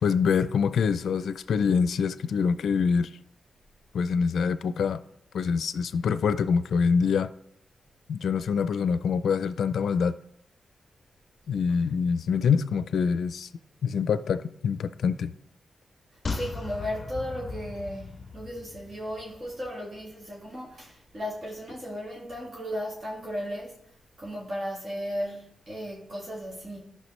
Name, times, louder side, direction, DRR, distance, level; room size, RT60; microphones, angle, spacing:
voice 1, 0.0-3.1 3.9-5.0 5.3-7.3 8.1-10.2 11.5-13.5 13.8-15.3, left 6 dB, 85° left, 0.4 m, -25 dB
sound 1, 16.3-19.7 20.0-20.1, left 4 dB, 35° left, 0.7 m, -37 dB
voice 2, 16.3-23.8 24.2-26.8, equal, 40° right, 2.0 m, -35 dB
14.0 x 5.6 x 3.2 m
wide cardioid pair, 135°, 0 cm